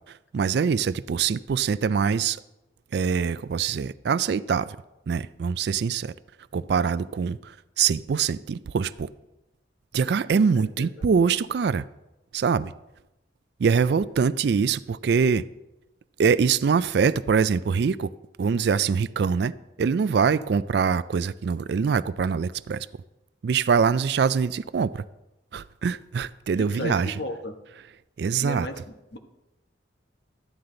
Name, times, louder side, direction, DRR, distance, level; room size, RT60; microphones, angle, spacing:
voice 1, 0.1-2.4 2.9-4.8 5.1-6.1 6.5-9.1 9.9-11.8 12.3-12.7 13.6-15.5 16.2-18.1 18.4-19.5 19.8-22.9 23.4-25.0 25.5-27.2 28.2-28.7, right 6 dB, 60° right, 16 dB, 0.3 m, -24 dB
voice 2, 10.3-10.9 26.5-27.6 28.4-29.2, left 1 dB, 60° left, 5 dB, 1.1 m, -35 dB
13.5 x 9.5 x 3.8 m, 0.96 s
head